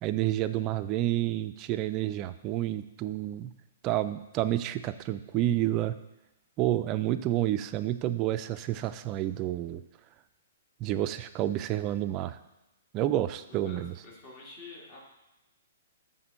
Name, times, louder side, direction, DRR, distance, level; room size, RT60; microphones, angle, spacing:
voice 1, 0.0-3.5 3.8-6.0 6.6-9.8 10.8-12.4 12.9-13.9, right 13 dB, 30° right, 11 dB, 0.3 m, -29 dB
voice 2, 13.4-15.0, left 3 dB, 35° left, -2 dB, 1.9 m, -48 dB
6.0 x 3.7 x 5.2 m, 0.93 s
hypercardioid pair, 125°, 0 cm